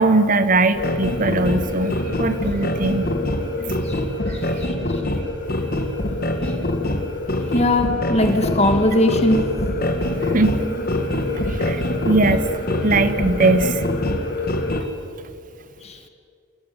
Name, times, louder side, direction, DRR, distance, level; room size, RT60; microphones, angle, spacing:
voice 1, 0.0-3.0 4.3-4.4 10.3-10.6 11.4-12.4 12.8-13.8, right 2 dB, 40° right, 12 dB, 0.9 m, -20 dB
sound 1, 0.7-14.8, left 1 dB, 50° left, 2.0 m, -24 dB
voice 2, 7.5-9.4 15.8-16.0, left 1 dB, 30° left, 5 dB, 2.4 m, -18 dB
27.0 x 15.5 x 9.6 m, 2.2 s
head